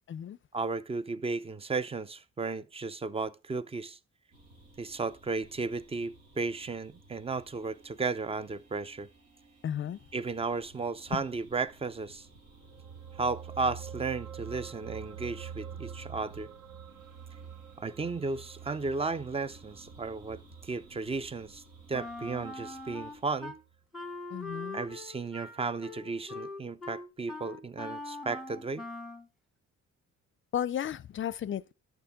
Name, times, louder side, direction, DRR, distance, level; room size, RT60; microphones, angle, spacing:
voice 1, 0.5-4.0 4.8-9.1 10.1-12.3 13.2-16.5 17.8-21.6 21.9-23.5 24.7-28.9, right 4 dB, 20° right, 0.5 m, -34 dB
sound 1, 4.3-23.2, right 2 dB, 85° right, 5.4 m, -58 dB
voice 2, 9.6-10.0 11.1-11.2 24.3-24.8 30.5-31.7, left 10 dB, 40° left, 0.5 m, -34 dB
sound 2, 12.4-23.1 23.4-23.6, right 8 dB, 60° right, 0.9 m, -46 dB
Wind instrument woodwind instrument, 21.9-23.6 23.9-29.3, left 2 dB, ahead, 1.3 m, -42 dB
11.5 x 7.2 x 3.7 m
cardioid pair, 90°, 30 cm